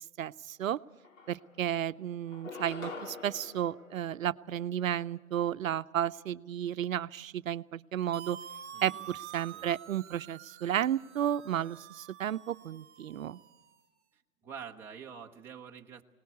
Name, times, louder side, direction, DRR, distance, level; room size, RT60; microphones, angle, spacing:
voice 1, 0.2-0.8 1.3-8.4 8.8-13.4, right 10 dB, 70° right, 14 dB, 0.7 m, -33 dB
sound 1, 0.6-0.7 1.0-1.8 2.3-4.9, left 3 dB, 70° left, 3.2 m, -46 dB
sound 2, 8.1-13.9, right 9 dB, 55° right, 1.1 m, -48 dB
voice 2, 8.7-9.2 9.5-9.7 14.1-16.0, right 7 dB, 5° right, -1 dB, 0.8 m, -47 dB
22.0 x 19.5 x 8.4 m, 1.1 s
hypercardioid pair, 145°, 41 cm